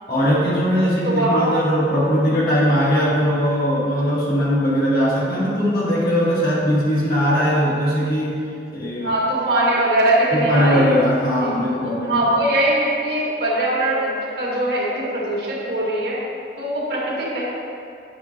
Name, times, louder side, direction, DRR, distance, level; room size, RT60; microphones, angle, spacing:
voice 1, 0.1-8.3 8.7-9.1 10.3-12.3, equal, 55° left, -8 dB, 1.5 m, -20 dB
voice 2, 1.0-1.5 9.0-11.0 11.4-16.2 16.6-17.4, right 1 dB, 65° right, -6 dB, 1.8 m, -21 dB
9.4 x 6.1 x 2.8 m, 2.5 s
head